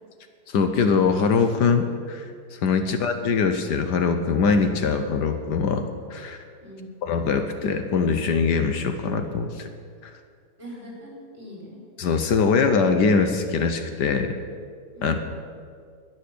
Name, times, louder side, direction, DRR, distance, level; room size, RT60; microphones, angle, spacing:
voice 1, 0.5-2.2 2.5-6.4 7.0-9.7 12.0-14.3 15.0-15.2, left 5 dB, 75° left, 7 dB, 1.5 m, -22 dB
voice 2, 10.6-11.8 14.9-15.2, equal, 35° right, -4 dB, 5.3 m, -42 dB
21.5 x 7.3 x 6.8 m, 2.1 s
omnidirectional pair, 1.8 m